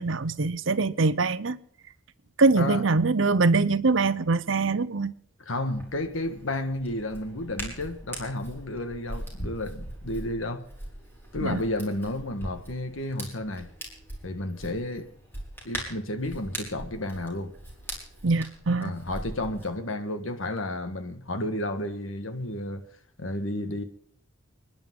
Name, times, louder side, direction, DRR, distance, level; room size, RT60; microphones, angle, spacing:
voice 1, 0.0-1.6 2.4-5.1 11.4-11.6 18.2-18.9, right 3 dB, 65° right, 0.7 m, -23 dB
voice 2, 5.4-10.7 11.3-13.7 14.2-15.1 15.6-17.5 18.8-22.9 23.2-23.8, left 1 dB, 70° left, 1.6 m, -32 dB
Hands, 5.6-19.7, equal, 10° left, 4.7 m, -41 dB
29.5 x 10.5 x 3.7 m
head